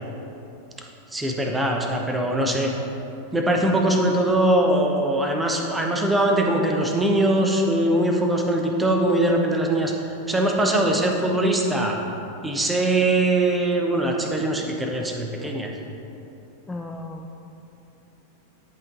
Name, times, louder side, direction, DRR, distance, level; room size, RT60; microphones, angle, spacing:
voice 1, 1.1-2.7 3.3-9.9 10.3-12.0 12.4-15.7, right 1 dB, 10° right, 1 dB, 0.8 m, -21 dB
voice 2, 16.7-17.4, left 2 dB, 10° left, 1 dB, 0.3 m, -36 dB
11.0 x 3.8 x 3.8 m, 2.9 s
figure-of-eight pair, 90°, 0 cm